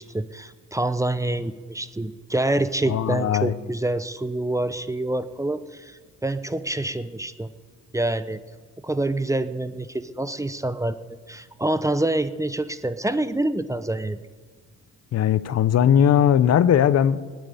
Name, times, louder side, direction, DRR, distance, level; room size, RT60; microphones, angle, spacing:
voice 1, 0.1-7.5 7.9-8.4 8.8-11.0 11.3-14.2, right 1 dB, 10° right, 12 dB, 0.6 m, -26 dB
voice 2, 2.9-3.5 15.1-17.2, left 9 dB, 55° left, 16 dB, 0.7 m, -19 dB
18.5 x 7.6 x 9.1 m, 1.5 s
cardioid pair, 90°, 30 cm